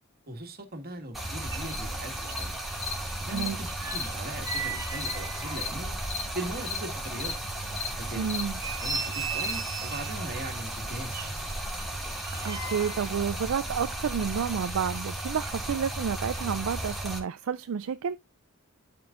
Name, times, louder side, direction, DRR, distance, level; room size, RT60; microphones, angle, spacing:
voice 1, 0.3-2.5 3.2-6.0 6.3-7.4 8.0-8.5 8.8-11.3, right 1 dB, 45° right, 1.8 m, -39 dB
Stream, 1.1-17.2, right 1 dB, ahead, 2.5 m, -35 dB
sound 1, 1.1-1.2 1.4-2.4 2.7-6.6 7.0-7.1 7.6-7.7 8.3-10.3 11.1-13.1 13.4-13.5, right 6 dB, 15° right, 1.3 m, -38 dB
Cricket, 1.7-1.8 2.3-2.4 2.8-2.9 3.4-3.5 3.9-4.0 4.5-4.6 5.0-5.1 5.6-5.7 6.0-6.2 6.7-6.8 7.1-7.3 7.7-7.9 8.2-8.4 8.8-9.0 9.4-9.5, left 6 dB, 55° left, 2.0 m, -34 dB
voice 2, 3.3-3.6 8.2-8.6 12.4-18.2, right 7 dB, 65° right, 0.4 m, -30 dB
12.0 x 5.2 x 2.5 m
head